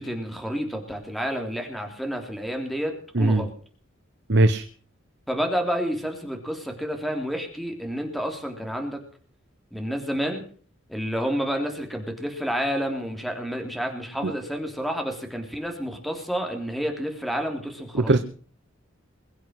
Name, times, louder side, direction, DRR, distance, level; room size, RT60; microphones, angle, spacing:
voice 1, 0.0-3.5 5.3-9.0 9.7-10.4 10.9-18.1, equal, ahead, 3 dB, 3.3 m, -29 dB
voice 2, 3.1-3.5 4.3-4.6 14.2-14.3 17.9-18.2, right 2 dB, 55° right, 10 dB, 1.0 m, -19 dB
22.0 x 8.1 x 7.7 m, 0.44 s
head